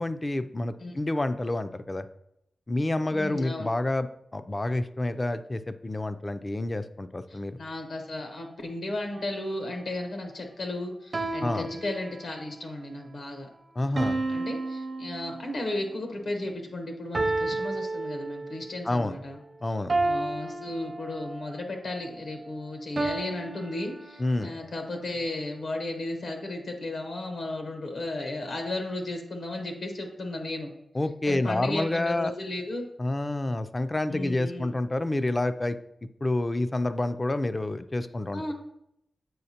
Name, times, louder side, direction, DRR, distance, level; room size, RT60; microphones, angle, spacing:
voice 1, 0.0-2.0 2.7-7.6 11.4-11.7 13.8-14.2 18.8-19.2 19.6-19.9 24.2-24.5 30.9-32.3 33.0-35.8 36.2-38.5, left 2 dB, 25° left, 11 dB, 0.3 m, -28 dB
voice 2, 3.1-3.7 7.3-13.5 13.8-19.4 20.0-30.7 31.3-32.9 34.1-34.7 38.3-38.5, left 2 dB, 75° left, 3 dB, 1.0 m, -34 dB
sound 1, 9.1-9.6 11.1-12.6 14.0-15.8 17.1-18.8 19.9-21.5 23.0-24.6, right 2 dB, 45° right, 0.5 m, -32 dB
7.7 x 4.9 x 2.8 m, 0.80 s
wide cardioid pair, 95°, 0 cm